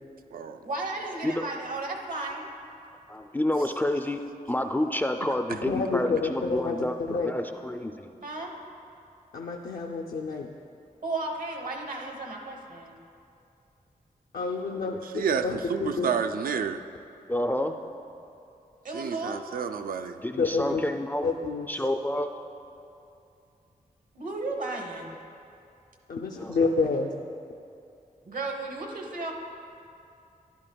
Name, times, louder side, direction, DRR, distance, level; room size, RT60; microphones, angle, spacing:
voice 1, 0.6-2.5 8.2-8.5 11.0-13.0 18.8-19.4 24.1-25.2 28.2-29.3, right 2 dB, 65° right, 2 dB, 1.1 m, -34 dB
voice 2, 3.1-4.2 4.5-8.1 17.3-17.8 20.2-21.3 21.7-22.3 26.3-26.6, left 1 dB, 15° left, 5 dB, 0.3 m, -29 dB
voice 3, 5.7-7.3 9.3-10.5 14.3-16.1 20.4-20.8 21.2-21.8 26.1-27.1, left 4 dB, 80° left, 1 dB, 0.5 m, -29 dB
voice 4, 15.1-16.8 18.9-20.2, right 6 dB, 85° right, 8 dB, 0.4 m, -30 dB
12.0 x 11.0 x 2.3 m, 2.6 s
wide cardioid pair, 105°, 15 cm